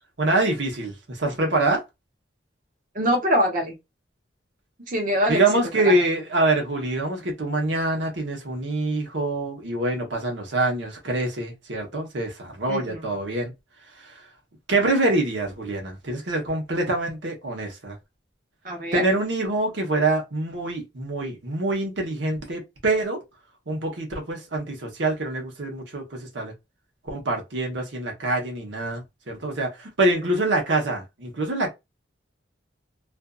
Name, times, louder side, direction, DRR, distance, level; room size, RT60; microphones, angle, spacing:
voice 1, 0.2-1.8 5.3-13.5 14.7-18.0 18.9-23.2 23.7-26.5 27.0-31.7, right 2 dB, 75° right, 1.0 m, -25 dB
voice 2, 2.9-3.7 4.9-5.4 5.8-6.0 12.7-13.0 18.6-19.0 30.1-30.2, equal, 45° right, 0.9 m, -24 dB
2.6 x 2.5 x 2.3 m
head